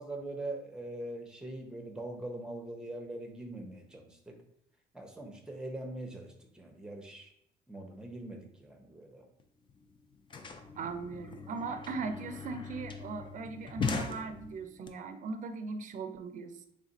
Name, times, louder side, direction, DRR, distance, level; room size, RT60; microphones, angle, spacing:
voice 1, 0.0-4.4 4.9-7.3 7.7-9.2, right 1 dB, 5° right, 3 dB, 0.7 m, -42 dB
sound 1, 9.4-9.5 9.7-14.9, left 5 dB, 30° left, 0.4 m, -40 dB
voice 2, 10.8-16.6, right 4 dB, 50° right, 8 dB, 0.5 m, -39 dB
3.6 x 2.4 x 4.0 m, 0.75 s
cardioid pair, 110°, 17 cm